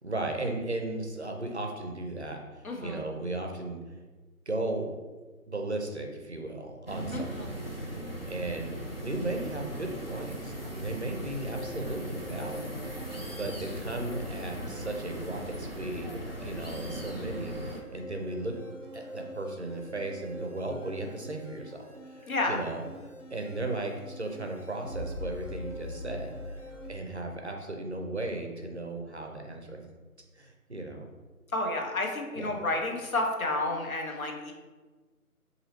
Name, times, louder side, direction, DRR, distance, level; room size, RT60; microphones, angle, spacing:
voice 1, 0.0-3.8 4.5-4.9 5.5-7.6 8.3-18.5 18.9-22.8 23.3-29.9 30.3-31.1 32.4-32.5, right 2 dB, 50° right, 2 dB, 0.5 m, -36 dB
voice 2, 2.6-3.0 7.1-7.5 22.3-22.6 31.5-34.5, left 2 dB, 70° left, 1 dB, 0.9 m, -31 dB
sound 1, 6.9-17.8, equal, 45° left, 0.4 m, -38 dB
sound 2, 11.5-26.9, left 1 dB, 90° left, 1.1 m, -45 dB
4.0 x 2.7 x 2.8 m, 1.3 s
figure-of-eight pair, 170°, 44 cm